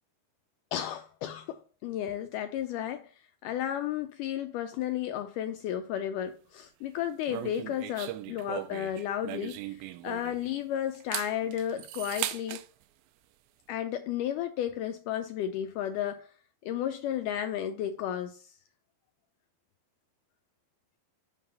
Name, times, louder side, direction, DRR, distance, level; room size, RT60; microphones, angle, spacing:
voice 1, 0.7-12.6 13.7-16.3 16.6-18.5, left 10 dB, 85° left, 1.8 m, -33 dB
sound 1, 7.3-10.5 10.9-12.7, right 15 dB, 85° right, 2.3 m, -38 dB
5.8 x 5.4 x 5.3 m
omnidirectional pair, 4.2 m